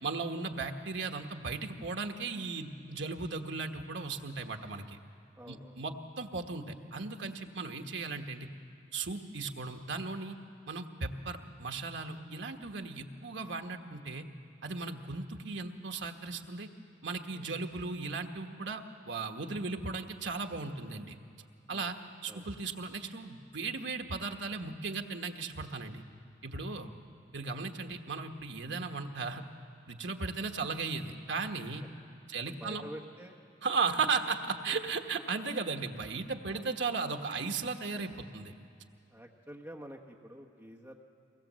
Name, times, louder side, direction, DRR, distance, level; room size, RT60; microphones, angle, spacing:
voice 1, 0.0-5.0 5.5-8.5 8.9-10.4 10.7-14.2 14.6-16.7 17.0-21.2 21.7-22.0 22.2-26.0 26.4-26.9 27.3-29.4 29.9-31.8 32.3-32.8 33.6-38.5, right 4 dB, 70° right, 4 dB, 1.3 m, -36 dB
voice 2, 5.4-5.8 17.3-17.5 21.7-21.9 22.3-22.5 31.8-32.0 32.4-33.4 36.5-36.7 39.1-41.0, equal, 10° right, 0 dB, 1.3 m, -48 dB
23.5 x 19.5 x 7.6 m, 2.4 s
head